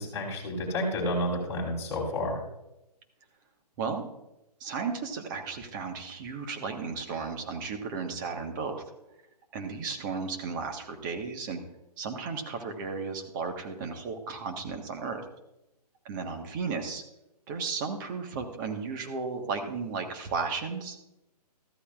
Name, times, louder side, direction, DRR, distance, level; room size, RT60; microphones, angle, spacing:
voice 1, 0.0-2.4, left 1 dB, 10° left, -5 dB, 3.3 m, -30 dB
voice 2, 4.6-8.8 9.5-11.6 12.0-15.2 16.0-17.0 17.5-21.0, right 5 dB, 30° right, 4 dB, 1.5 m, -34 dB
14.0 x 13.0 x 2.5 m, 0.91 s
figure-of-eight pair, 135°, 21 cm